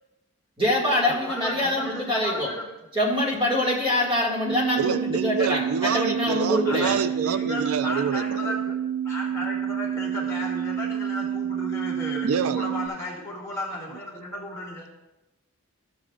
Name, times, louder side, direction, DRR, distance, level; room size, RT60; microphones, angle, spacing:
voice 1, 0.6-2.5 2.9-7.0, left 1 dB, 25° right, -5 dB, 1.8 m, -24 dB
voice 2, 1.1-2.6 6.6-8.8 9.0-14.9, left 1 dB, 15° left, -6 dB, 2.2 m, -34 dB
sound 1, 4.4-12.9, right 9 dB, 45° right, 0.7 m, -29 dB
voice 3, 4.8-8.6 12.2-12.7, right 6 dB, 85° right, 12 dB, 0.4 m, -27 dB
13.0 x 7.5 x 2.4 m, 0.98 s
head